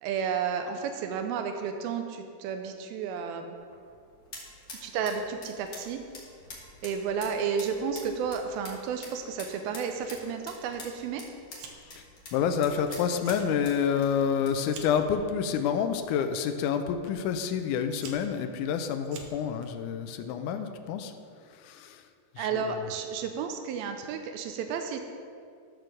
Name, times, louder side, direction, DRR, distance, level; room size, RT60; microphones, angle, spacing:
voice 1, 0.0-3.6 4.8-6.0 6.8-11.2 22.4-25.1, right 6 dB, 90° right, 5 dB, 2.5 m, -32 dB
sound 1, 3.6-15.2, left 2 dB, 55° left, 1.0 m, -48 dB
Fire, 11.5-12.0 12.3-12.8 13.1-13.5 13.9-15.1 15.9-16.2 17.1-17.2 17.7-19.7, right 5 dB, 70° right, 1.9 m, -46 dB
voice 2, 12.3-21.1 21.6-22.0 22.4-22.7, left 7 dB, 85° left, 7 dB, 1.8 m, -28 dB
11.5 x 4.6 x 6.4 m, 2.2 s
omnidirectional pair, 4.1 m